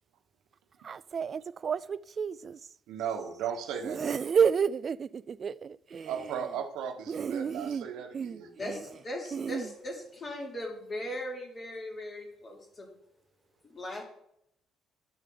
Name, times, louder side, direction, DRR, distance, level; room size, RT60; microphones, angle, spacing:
voice 1, 0.8-2.6 3.8-6.3 7.1-7.9 8.1-8.4 8.7-8.8 9.3-9.7, right 6 dB, 40° right, 0.3 m, -30 dB
voice 2, 2.9-4.1 6.1-8.5, right 8 dB, 85° right, 1.2 m, -36 dB
voice 3, 8.6-12.9 13.6-14.0, left 1 dB, 35° left, 3.0 m, -39 dB
11.5 x 6.4 x 3.9 m
cardioid pair, 125°, 0 cm